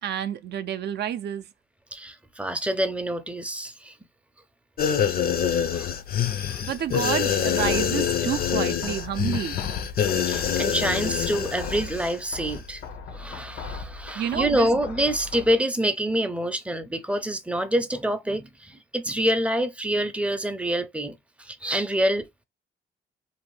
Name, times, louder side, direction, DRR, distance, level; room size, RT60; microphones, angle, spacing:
voice 1, 0.0-1.5 6.6-9.6 14.1-14.8, right 9 dB, 60° right, 0.4 m, -29 dB
voice 2, 1.9-3.9 5.7-5.9 6.5-6.6 10.3-12.8 13.1-22.3, right 1 dB, 5° right, 0.5 m, -26 dB
sound 1, 4.8-12.1 12.4-12.6, left 8 dB, 50° left, 0.5 m, -26 dB
sound 2, 7.6-15.6, left 4 dB, 80° left, 0.8 m, -39 dB
2.6 x 2.1 x 3.1 m
cardioid pair, 90°, 20 cm